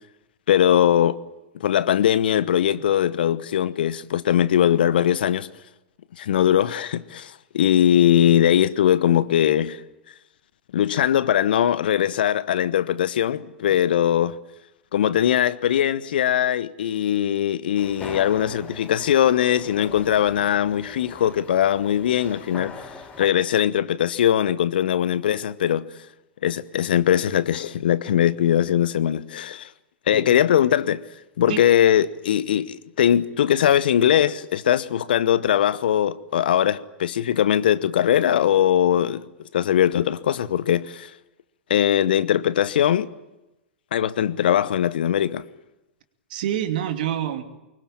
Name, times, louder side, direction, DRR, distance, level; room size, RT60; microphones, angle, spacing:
voice 1, 0.5-1.2 1.5-5.5 6.2-9.8 10.7-14.3 14.9-22.7 23.2-25.9 26.4-29.7 30.1-31.0 31.4-39.2 39.5-41.1 41.7-43.1 43.9-45.4, left 10 dB, 65° left, 1.0 m, -20 dB
sound 1, 17.8-23.3, left 4 dB, 25° left, 4.8 m, -41 dB
voice 2, 30.1-30.4 31.5-31.6 46.3-47.4, right 10 dB, 55° right, 2.7 m, -27 dB
24.5 x 22.5 x 8.9 m
figure-of-eight pair, 100°, 6 cm